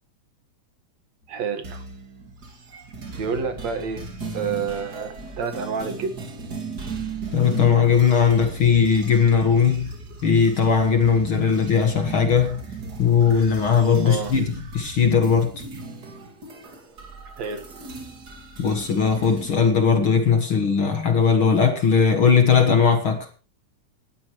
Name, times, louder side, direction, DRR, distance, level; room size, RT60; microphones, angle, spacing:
voice 1, 1.3-1.8 3.2-4.0 4.3-6.2 14.0-14.3 17.4-17.6, right 5 dB, 60° right, 2.9 m, -28 dB
sound 1, 1.6-19.5, right 3 dB, 30° right, 2.7 m, -37 dB
voice 2, 7.3-9.9 10.2-12.6 13.0-15.5 18.6-23.3, left 6 dB, 50° left, 1.9 m, -19 dB
19.5 x 13.0 x 3.2 m
omnidirectional pair, 3.6 m